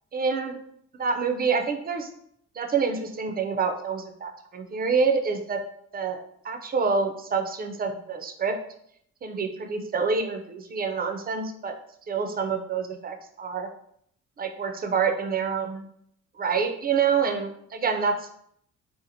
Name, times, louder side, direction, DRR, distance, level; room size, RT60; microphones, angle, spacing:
voice 1, 0.1-0.6 1.0-2.1 2.6-5.6 5.9-8.5 9.2-11.7 12.1-13.7 14.4-15.8 16.4-18.3, right 5 dB, 30° right, 5 dB, 0.4 m, -27 dB
2.8 x 2.4 x 2.6 m, 0.69 s
cardioid pair, 90°, 30 cm